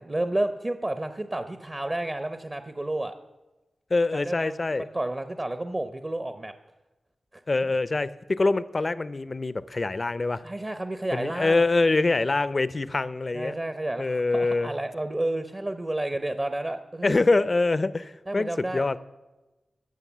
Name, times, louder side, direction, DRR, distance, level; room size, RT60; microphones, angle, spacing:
voice 1, 0.0-3.1 4.1-6.5 7.3-7.7 10.4-11.6 13.3-17.2 18.3-18.9, right 1 dB, 30° right, 9 dB, 0.8 m, -31 dB
voice 2, 3.9-4.9 7.5-10.4 11.1-13.5 14.0-14.7 17.0-19.0, left 3 dB, 40° left, 16 dB, 0.5 m, -24 dB
16.0 x 6.5 x 7.3 m, 1.1 s
wide cardioid pair, 80°, 0 cm